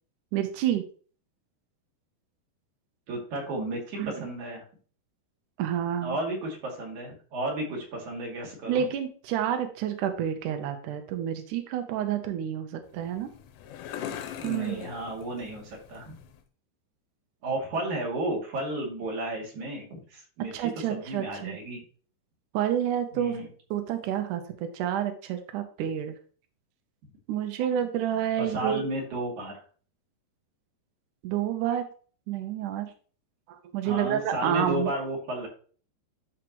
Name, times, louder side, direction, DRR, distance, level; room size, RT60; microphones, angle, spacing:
voice 1, 0.3-0.8 4.0-4.3 5.6-6.2 8.7-13.3 14.4-14.8 20.5-21.6 22.5-23.4 23.7-24.4 24.7-26.1 27.3-28.8 31.2-31.9 32.3-32.9 33.5-34.9, right 10 dB, 90° right, 6 dB, 1.7 m, -29 dB
voice 2, 3.1-4.6 6.0-8.8 14.4-16.1 17.4-21.8 23.1-23.5 28.4-29.5 33.8-35.5, right 1 dB, 50° right, -1 dB, 3.4 m, -33 dB
sound 1, 12.8-16.4, left 9 dB, 90° left, 3.0 m, -41 dB
12.5 x 4.8 x 3.1 m, 0.42 s
omnidirectional pair, 5.0 m